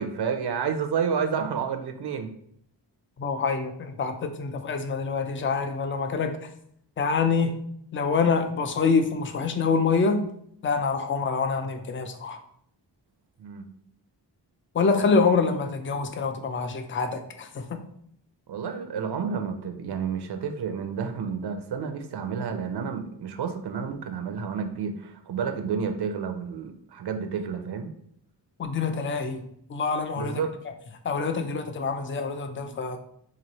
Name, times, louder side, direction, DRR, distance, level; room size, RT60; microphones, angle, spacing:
voice 1, 0.0-2.3 13.4-13.7 18.5-27.9 30.2-30.5, right 6 dB, 65° right, 6 dB, 0.5 m, -30 dB
voice 2, 3.2-6.5 7.0-7.6 7.9-10.2 10.6-12.4 14.7-17.8 28.6-30.4 31.0-33.0, left 4 dB, 30° left, 7 dB, 0.4 m, -26 dB
3.1 x 2.6 x 4.0 m, 0.69 s
wide cardioid pair, 105°, 43 cm